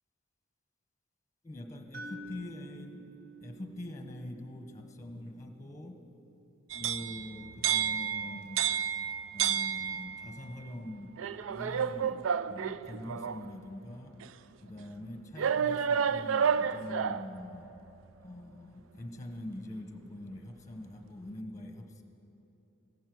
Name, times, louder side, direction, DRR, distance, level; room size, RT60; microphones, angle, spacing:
voice 1, 1.4-3.0 3.4-6.0 6.7-8.7 9.3-11.2 11.5-14.2 14.6-17.8 18.2-22.0, left 1 dB, 15° left, 5 dB, 1.0 m, -44 dB
sound 1, 1.9-6.0, right 1 dB, 50° right, 1.0 m, -50 dB
sound 2, 6.7-10.3 11.2-13.5 14.2-14.3 15.4-17.3, right 7 dB, 85° right, 0.4 m, -31 dB
15.0 x 12.0 x 6.1 m, 3.0 s
head